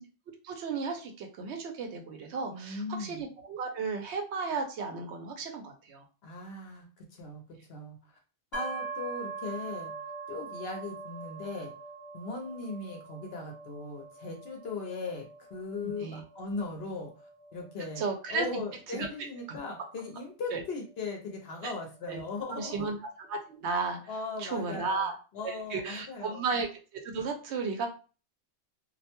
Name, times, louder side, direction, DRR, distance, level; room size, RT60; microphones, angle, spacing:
voice 1, 0.4-6.0 15.8-16.2 18.0-18.6 19.0-19.1 19.5-19.6 20.5-20.6 21.6-21.7 22.1-22.2 22.5-23.0 23.3-24.0 24.4-25.1 25.4-26.7 26.9-27.9, right 4 dB, 85° right, 3 dB, 0.9 m, -34 dB
voice 2, 2.5-3.2 6.2-8.2 8.5-9.9 10.3-11.7 12.1-17.1 17.5-22.9 24.1-26.4, left 3 dB, 70° left, 1 dB, 0.8 m, -38 dB
sound 1, 8.5-22.2, right 4 dB, 45° right, 0.3 m, -44 dB
2.4 x 2.1 x 2.8 m, 0.35 s
omnidirectional pair, 1.1 m